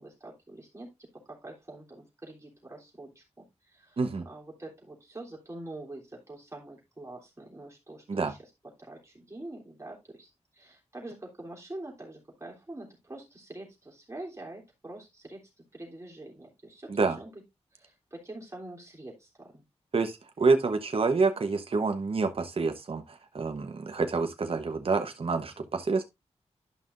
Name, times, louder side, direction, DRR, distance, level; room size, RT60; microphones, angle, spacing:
voice 1, 0.0-3.2 3.7-8.4 8.8-17.4 17.7-19.6, right 2 dB, 25° right, 3.3 m, -45 dB
voice 2, 19.9-26.0, right 4 dB, 55° right, 1.0 m, -27 dB
11.5 x 5.7 x 2.5 m
wide cardioid pair, 90°, 12 cm